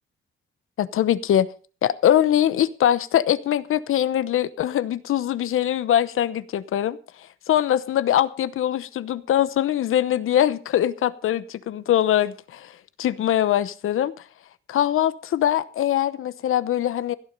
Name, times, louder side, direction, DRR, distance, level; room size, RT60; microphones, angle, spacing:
voice 1, 0.8-1.5 1.8-7.0 7.5-12.7 13.0-14.1 14.7-17.1, left 11 dB, 90° left, 16 dB, 0.9 m, -22 dB
16.0 x 10.5 x 5.3 m, 0.39 s
wide cardioid pair, 160°, 21 cm